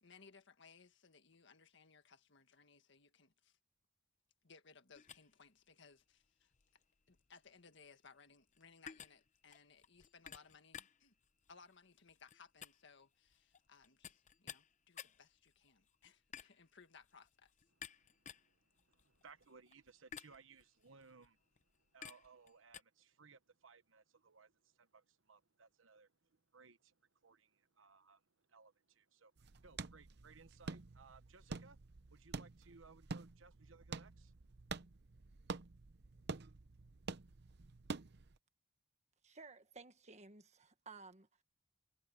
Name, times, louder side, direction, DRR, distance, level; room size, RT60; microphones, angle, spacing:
voice 1, 0.0-3.6 4.4-6.5 7.1-11.2 11.5-17.5, left 5 dB, 65° left, 1.7 m, -63 dB
sound 1, 4.9-22.8, left 8 dB, 40° left, 0.7 m, -57 dB
voice 2, 18.0-21.4 21.9-29.3 29.6-31.8 32.1-34.3, right 4 dB, 85° right, 1.1 m, -63 dB
sound 2, 29.4-38.4, right 4 dB, 60° right, 0.8 m, -48 dB
voice 3, 39.2-41.4, right 4 dB, 35° right, 1.5 m, -56 dB
head